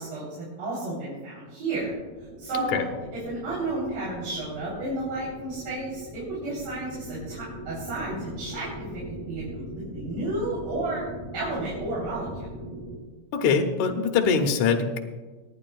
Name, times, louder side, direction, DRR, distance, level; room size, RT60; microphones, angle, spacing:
voice 1, 0.0-2.0 2.4-2.8 3.1-8.9 9.3-11.0 11.3-12.3, right 2 dB, 85° right, -8 dB, 5.5 m, -32 dB
sound 1, 1.7-13.0, equal, 10° left, 2.1 m, -40 dB
voice 2, 13.3-15.0, left 5 dB, 65° left, 3 dB, 2.2 m, -23 dB
26.0 x 9.8 x 2.4 m, 1.3 s
omnidirectional pair, 3.9 m